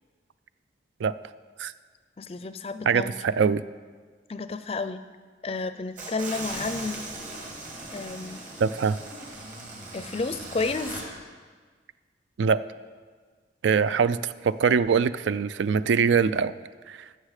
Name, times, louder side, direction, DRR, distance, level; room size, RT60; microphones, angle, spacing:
voice 1, 2.2-3.1 4.3-5.0 5.4-7.0 7.9-8.4 9.9-11.0, left 3 dB, 30° left, 12 dB, 0.4 m, -31 dB
voice 2, 2.9-3.6 8.6-9.0 12.4-12.6 13.6-16.5 16.9-17.0, right 6 dB, 80° right, 15 dB, 0.3 m, -23 dB
sound 1, 6.0-11.0, right 2 dB, 45° right, 2.2 m, -38 dB
14.5 x 6.5 x 4.9 m, 1.5 s
head